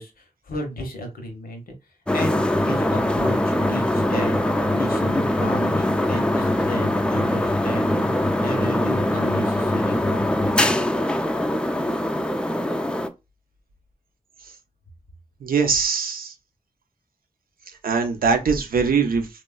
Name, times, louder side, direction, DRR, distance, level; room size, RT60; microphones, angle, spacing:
voice 1, 0.0-1.7 2.1-4.3 4.7-8.1 8.4-10.6, left 1 dB, 85° left, 0.8 m, -33 dB
sound 1, 2.1-13.1, left 1 dB, 5° left, 0.3 m, -22 dB
voice 2, 15.4-16.3 17.8-19.3, right 5 dB, 80° right, 0.6 m, -21 dB
3.0 x 2.2 x 2.3 m
cardioid pair, 45°, 15 cm